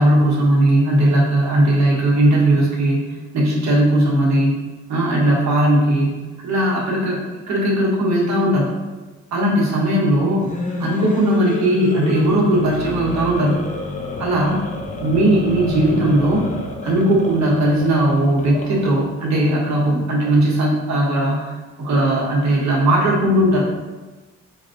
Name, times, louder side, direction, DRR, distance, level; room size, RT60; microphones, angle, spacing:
voice 1, 0.0-4.6 4.9-8.7 9.3-10.5 10.8-13.6 14.2-14.6 15.0-16.4 16.8-23.6, right 1 dB, 65° right, -4 dB, 1.1 m, -18 dB
sound 1, 10.3-19.0, left 3 dB, 25° left, 0.5 m, -29 dB
4.6 x 2.5 x 2.5 m, 1.2 s
cardioid pair, 90°, 30 cm